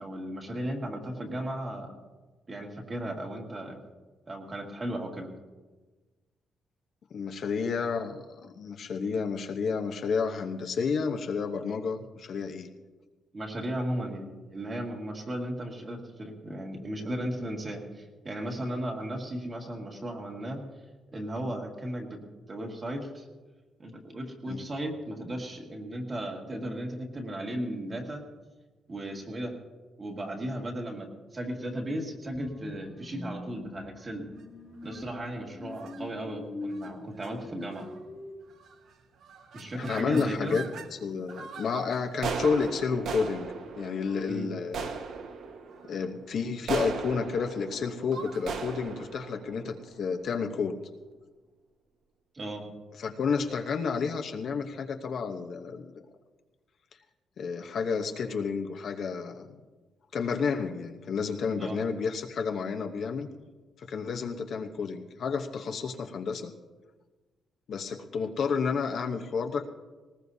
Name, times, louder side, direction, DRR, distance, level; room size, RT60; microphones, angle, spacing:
voice 1, 0.0-1.9 2.5-3.8 4.3-5.3 13.3-20.6 21.1-22.2 22.5-23.3 23.8-28.2 28.9-29.5 30.0-34.3 34.8-37.9 39.5-40.6 44.3-44.5 52.3-52.7 61.6-61.8, right 1 dB, 25° right, 1 dB, 2.0 m, -35 dB
voice 2, 7.1-12.7 24.5-24.6 39.7-40.6 40.9-43.5 43.8-45.0 45.9-50.8 53.0-55.9 57.4-59.5 60.1-63.3 63.8-66.5 67.7-69.7, left 5 dB, 50° left, 4 dB, 0.9 m, -31 dB
sound 1, 32.3-38.3, left 2 dB, 15° left, 1.5 m, -43 dB
sound 2, 34.8-35.2 35.7-36.0 36.7-36.9 37.2-37.3 37.6-38.0 38.6-38.9 39.2-40.9 41.3-50.5, right 5 dB, 65° right, 1.3 m, -38 dB
20.0 x 19.5 x 2.8 m, 1.3 s
cardioid pair, 175°, 0 cm